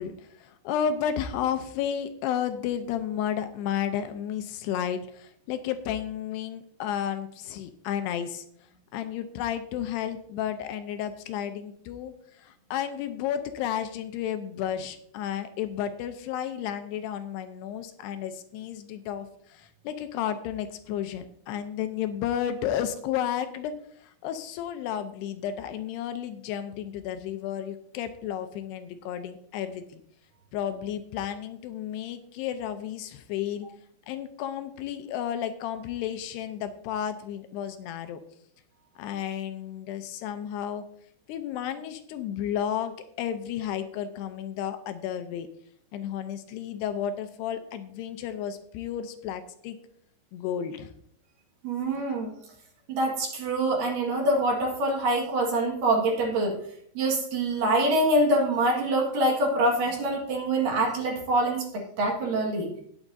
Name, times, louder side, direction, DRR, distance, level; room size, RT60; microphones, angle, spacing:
voice 1, 0.0-8.5 8.9-30.0 30.5-33.7 34.1-38.2 39.0-40.8 41.3-45.5 45.9-49.8 50.3-50.9, left 9 dB, 80° left, 9 dB, 2.6 m, -32 dB
voice 2, 51.6-52.3 52.9-56.5 56.9-62.7, right 1 dB, 60° right, 0 dB, 3.1 m, -25 dB
18.5 x 7.2 x 2.6 m, 0.67 s
omnidirectional pair, 4.9 m